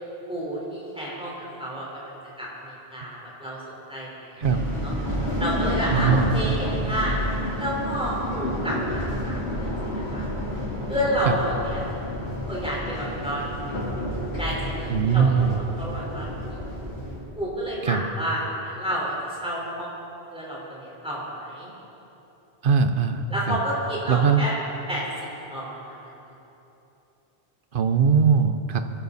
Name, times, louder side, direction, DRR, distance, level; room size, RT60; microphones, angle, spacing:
voice 1, 0.3-2.1 2.4-3.6 3.9-4.5 4.8-4.9 5.4-7.2 7.6-10.3 10.9-11.8 12.5-13.4 14.4-16.6 17.4-19.1 19.4-19.9 20.3-21.7 23.3-24.6 24.9-25.0 25.5-26.0, equal, 5° right, -6 dB, 4.4 m, -30 dB
sound 1, 4.4-17.2, equal, 75° left, 4.0 m, -29 dB
voice 2, 5.9-6.4 11.3-11.4 14.9-15.6 17.8-18.0 22.6-23.6 24.1-24.5 27.7-28.8, right 6 dB, 55° right, 8 dB, 1.0 m, -21 dB
24.5 x 11.5 x 4.2 m, 3.0 s
omnidirectional pair, 1.1 m